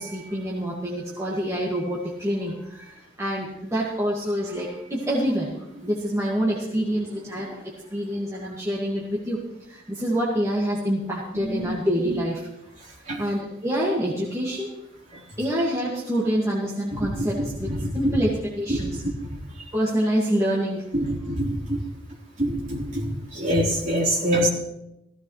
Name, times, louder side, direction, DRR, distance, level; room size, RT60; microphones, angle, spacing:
voice 1, 0.0-5.5 5.8-12.4 13.2-14.7 15.4-17.7 17.9-18.3 18.6-19.0 19.7-20.8, equal, 15° right, -5 dB, 1.9 m, -26 dB
voice 2, 11.3-11.7 12.0-12.2 13.1-13.2 16.9-18.2 18.7-19.4 20.9-21.8 22.4-24.5, equal, 40° right, -4 dB, 3.9 m, -26 dB
16.0 x 15.0 x 3.2 m, 0.85 s
head